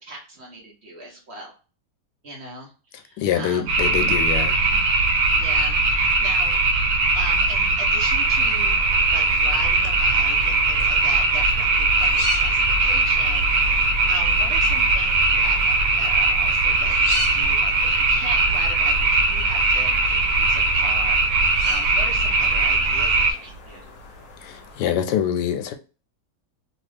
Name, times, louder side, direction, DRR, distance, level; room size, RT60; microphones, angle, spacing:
voice 1, 0.0-1.5 2.2-3.7 4.6-4.9 5.3-6.6 7.1-23.9, right 1 dB, 50° right, 0.9 m, -39 dB
voice 2, 3.2-4.6 24.4-25.7, left 9 dB, 85° left, 1.2 m, -24 dB
sound 1, 3.7-23.3, right 3 dB, 80° right, 1.2 m, -20 dB
sound 2, 8.2-24.9, left 2 dB, 60° left, 1.0 m, -38 dB
2.9 x 2.4 x 3.2 m
omnidirectional pair, 1.8 m